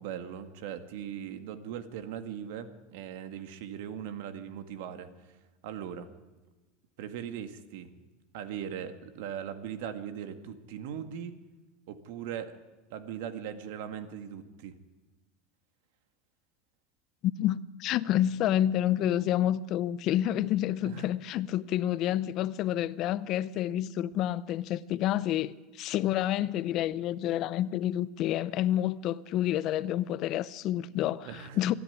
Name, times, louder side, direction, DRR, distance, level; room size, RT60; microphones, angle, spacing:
voice 1, 0.0-5.4 5.6-6.1 7.0-7.9 8.3-11.4 11.9-12.6 12.9-14.8 20.8-21.1 31.2-31.6, right 9 dB, 70° right, 2.0 m, -39 dB
voice 2, 17.2-31.8, left 12 dB, 45° left, 0.7 m, -29 dB
27.0 x 10.5 x 9.6 m
supercardioid pair, 140°, 0 cm